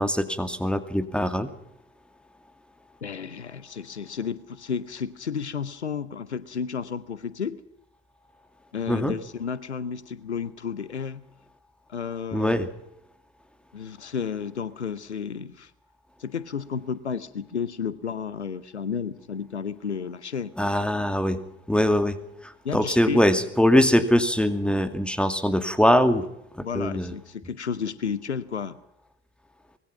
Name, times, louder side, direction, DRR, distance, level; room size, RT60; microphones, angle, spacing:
voice 1, 0.0-1.5 8.9-9.2 12.3-12.7 20.6-21.4 21.7-22.1 22.4-26.2 26.6-27.1, equal, 5° left, 9 dB, 2.4 m, -22 dB
voice 2, 3.0-7.6 8.7-11.2 11.9-12.6 13.7-15.7 16.2-20.5 22.6-23.2 26.6-28.8, left 6 dB, 90° left, 17 dB, 0.7 m, -32 dB
24.5 x 20.5 x 5.9 m, 0.82 s
figure-of-eight pair, 55°, 33 cm